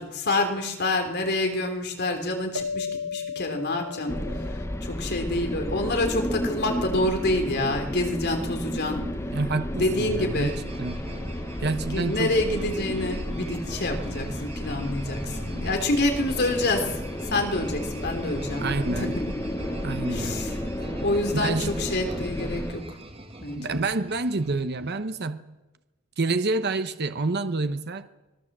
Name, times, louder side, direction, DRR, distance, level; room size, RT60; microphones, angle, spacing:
voice 1, 0.0-4.2 4.8-9.0 9.8-10.6 11.9-17.0 17.3-19.2 20.1-20.5 21.0-22.8 23.4-23.8, left 2 dB, 50° left, 5 dB, 3.5 m, -27 dB
sound 1, 2.6-5.5, left 5 dB, 70° right, 1.2 m, -35 dB
sound 2, 4.1-22.7, left 1 dB, 15° left, 1.0 m, -32 dB
voice 2, 9.3-11.0 11.6-12.4 18.6-19.2 19.8-20.4 21.3-21.9 23.6-25.6 26.2-28.1, right 3 dB, 50° right, 10 dB, 1.0 m, -28 dB
sound 3, 9.5-25.0, right 1 dB, 25° right, 2.0 m, -40 dB
25.5 x 19.5 x 7.5 m, 1.1 s
head